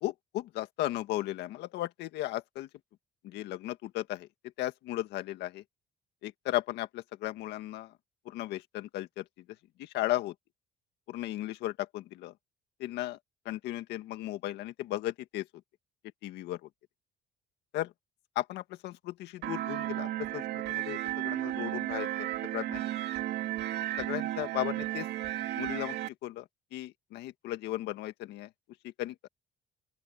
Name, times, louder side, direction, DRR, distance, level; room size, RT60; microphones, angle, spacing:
voice 1, 0.0-2.7 3.2-4.3 4.6-5.6 6.2-7.9 8.3-9.2 9.8-10.3 11.1-12.3 12.8-13.2 13.5-15.4 16.2-16.7 17.7-17.9 18.4-20.4 20.7-22.8 24.0-25.1 25.6-26.0 26.2-26.4 26.7-28.5 29.0-29.1, left 15 dB, 85° left, 1.8 m, -35 dB
sound 1, 19.4-26.1, right 14 dB, 80° right, 2.7 m, -34 dB
open air
cardioid pair, 110°, 17 cm